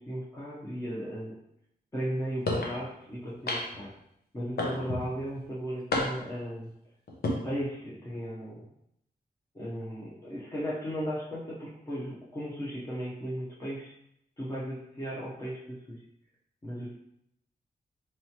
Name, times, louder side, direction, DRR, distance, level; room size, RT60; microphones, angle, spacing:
voice 1, 0.0-1.4 1.9-3.9 4.3-6.7 7.2-8.6 9.5-13.9 14.4-16.0 16.6-17.0, equal, 20° left, -7 dB, 0.7 m, -36 dB
sound 1, 2.5-2.8 3.5-3.9 4.6-5.1 5.9-6.4 7.1-7.4, left 2 dB, 80° left, 0.7 m, -30 dB
4.5 x 3.0 x 2.8 m, 0.75 s
wide cardioid pair, 175°, 16 cm